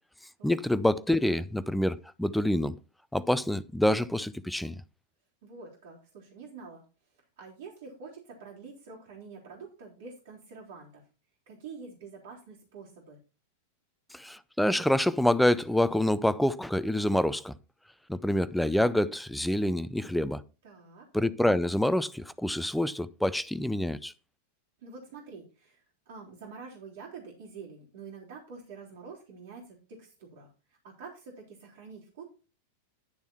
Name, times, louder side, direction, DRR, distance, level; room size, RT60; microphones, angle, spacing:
voice 1, 0.4-2.8 3.1-4.8 14.1-17.5 18.1-20.4 21.1-24.1, left 1 dB, ahead, 0.5 m, -27 dB
voice 2, 5.4-6.8 7.4-11.0 11.5-13.2 20.6-21.1 24.8-30.5 30.8-32.2, right 5 dB, 55° right, 3.8 m, -47 dB
11.0 x 7.0 x 4.2 m
figure-of-eight pair, 90°, 0 cm